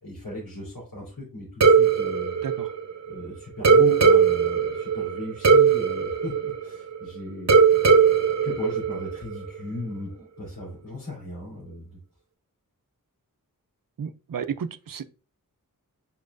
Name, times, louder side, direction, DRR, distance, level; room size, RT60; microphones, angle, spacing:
voice 1, 0.0-2.4 3.1-7.5 8.4-12.0, left 1 dB, 90° left, 3.4 m, -36 dB
sound 1, 1.6-3.2 3.6-7.0 7.5-9.4, right 6 dB, 50° right, 1.0 m, -19 dB
voice 2, 14.0-15.1, right 7 dB, 70° right, 0.6 m, -32 dB
7.5 x 5.6 x 2.5 m
wide cardioid pair, 85°, 34 cm